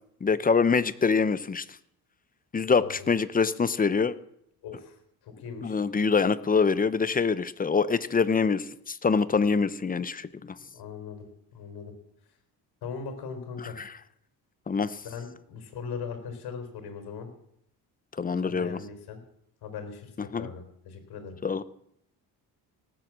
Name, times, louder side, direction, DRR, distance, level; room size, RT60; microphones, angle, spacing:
voice 1, 0.2-1.6 2.5-4.1 5.6-10.6 13.6-13.9 14.7-15.0 18.2-18.8 20.3-20.5 21.4-21.6, left 5 dB, 20° left, 16 dB, 0.8 m, -25 dB
voice 2, 4.6-5.0 5.2-5.8 10.7-11.9 12.8-13.8 15.0-17.3 18.4-19.2 19.6-21.4, left 6 dB, 75° left, 6 dB, 4.0 m, -39 dB
18.0 x 7.9 x 7.5 m, 0.73 s
cardioid pair, 110°, 39 cm